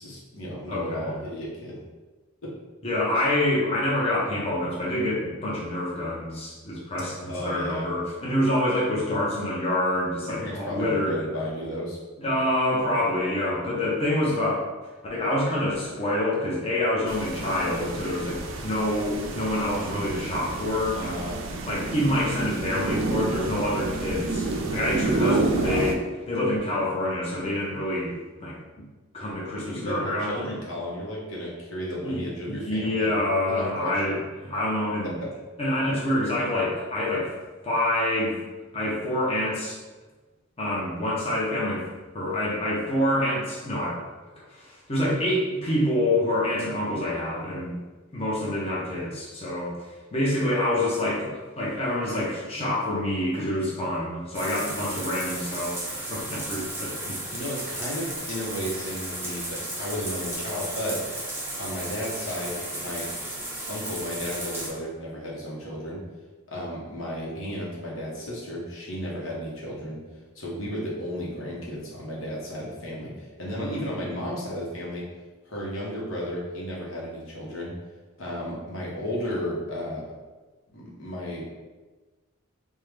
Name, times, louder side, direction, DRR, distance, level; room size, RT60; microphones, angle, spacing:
voice 1, 0.0-1.8 2.4-2.5 7.3-7.9 10.4-12.0 12.3-12.4 20.9-21.4 25.2-26.0 29.6-33.1 33.5-34.1 35.0-35.3 57.3-61.0 61.6-63.1 63.7-66.0 66.5-70.0 70.3-75.0 75.4-77.7 78.2-80.0 80.7-81.5, equal, 70° left, -5 dB, 0.9 m, -33 dB
voice 2, 0.7-1.2 2.8-11.1 12.2-14.6 15.1-21.2 21.6-24.4 24.7-25.9 26.3-28.1 28.4-28.8 29.1-30.5 32.0-34.2 34.5-35.2 35.6-37.3 37.6-38.4 38.7-39.8 40.6-41.9 42.1-44.0 44.5-47.7 48.1-57.2 73.6-74.0, left 1 dB, 30° left, -6 dB, 0.7 m, -27 dB
sound 1, 17.1-25.9, right 3 dB, 75° right, 0.4 m, -29 dB
sound 2, 54.3-64.7, right 1 dB, 10° right, 0.7 m, -34 dB
3.5 x 2.1 x 3.2 m, 1.3 s
head